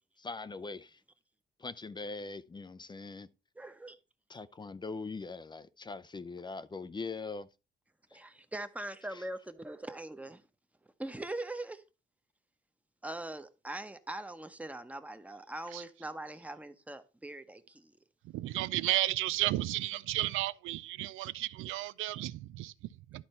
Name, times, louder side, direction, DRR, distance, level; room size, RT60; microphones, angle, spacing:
voice 1, 0.2-1.0 1.6-3.3 4.3-7.5 8.1-8.2 9.1-9.3, left 4 dB, 20° left, 0.5 m, -42 dB
voice 2, 3.6-4.0 8.1-10.4 11.0-11.8 13.0-17.9, right 1 dB, 5° right, 0.9 m, -42 dB
voice 3, 18.2-23.2, right 16 dB, 90° right, 0.4 m, -33 dB
11.5 x 4.4 x 4.3 m
cardioid pair, 90°, 20 cm